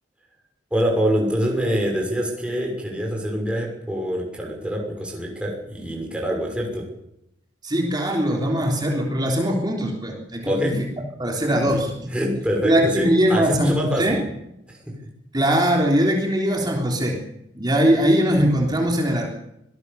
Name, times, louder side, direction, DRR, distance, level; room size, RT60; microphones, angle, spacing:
voice 1, 0.7-6.9 10.4-10.8 11.5-11.7 12.1-14.1 14.7-14.8, equal, 5° right, -1 dB, 6.2 m, -25 dB
voice 2, 7.6-10.7 11.2-12.1 12.6-14.2 15.3-17.2 17.5-19.3, equal, 20° right, 1 dB, 3.5 m, -21 dB
25.5 x 19.0 x 7.0 m, 0.80 s
head